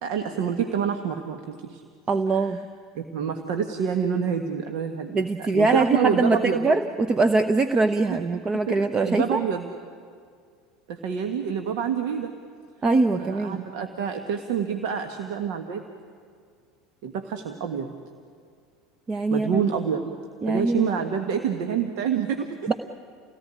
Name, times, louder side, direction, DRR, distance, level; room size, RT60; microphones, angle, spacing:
voice 1, 0.0-1.8 2.3-2.5 2.9-6.7 8.1-8.8 9.0-9.7 10.9-12.3 13.2-15.8 17.0-17.9 19.3-20.1 20.5-22.5, right 7 dB, 60° right, 6 dB, 1.5 m, -27 dB
voice 2, 2.1-2.6 5.1-9.4 12.8-13.6 19.1-19.7 20.4-20.9 22.7-22.8, right 3 dB, 25° right, 10 dB, 1.0 m, -22 dB
29.0 x 18.0 x 10.0 m, 2.2 s
figure-of-eight pair, 75°, 2 cm